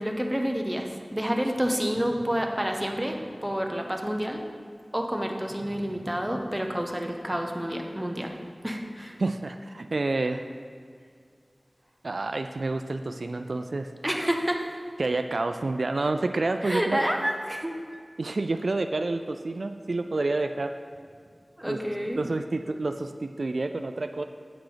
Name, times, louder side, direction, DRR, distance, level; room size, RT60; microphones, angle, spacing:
voice 1, 0.0-4.4 4.9-8.3 8.6-9.2 14.0-14.7 16.6-17.7 21.6-22.3, equal, 15° right, 2 dB, 0.9 m, -29 dB
voice 2, 9.2-10.4 12.0-13.9 15.0-17.0 18.2-20.7 21.7-21.8 22.2-24.2, right 2 dB, 80° right, 7 dB, 0.3 m, -28 dB
8.5 x 6.0 x 5.0 m, 2.1 s
wide cardioid pair, 40°, 0 cm